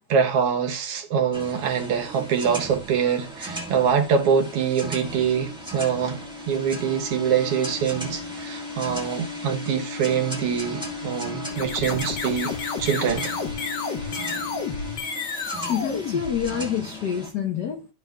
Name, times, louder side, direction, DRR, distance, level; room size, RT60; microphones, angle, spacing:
voice 1, 0.1-6.2 6.5-12.5 12.8-13.3, right 7 dB, 65° right, 1.7 m, -24 dB
sound 1, 1.3-17.3, right 2 dB, 10° right, 0.3 m, -38 dB
sound 2, 4.7-15.0, left 5 dB, 45° left, 1.5 m, -37 dB
sound 3, 11.5-16.9, left 5 dB, 65° left, 1.1 m, -31 dB
voice 2, 15.7-17.9, left 8 dB, 85° left, 0.9 m, -27 dB
12.5 x 5.2 x 2.3 m
omnidirectional pair, 3.3 m